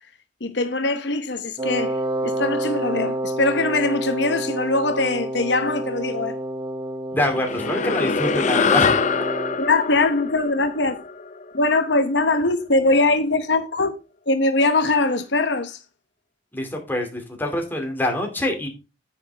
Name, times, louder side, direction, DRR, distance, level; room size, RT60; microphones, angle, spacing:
voice 1, 0.4-2.0 2.2-6.4 9.6-11.0 11.5-14.0 14.3-15.8, left 2 dB, 70° left, 1.0 m, -21 dB
Wind instrument woodwind instrument, 1.6-9.6, right 1 dB, 25° right, 1.1 m, -29 dB
voice 2, 7.1-8.9 16.5-18.7, left 1 dB, 10° left, 2.5 m, -25 dB
sound 1, 7.3-12.0, left 5 dB, 40° left, 0.6 m, -24 dB
9.9 x 7.8 x 3.4 m
head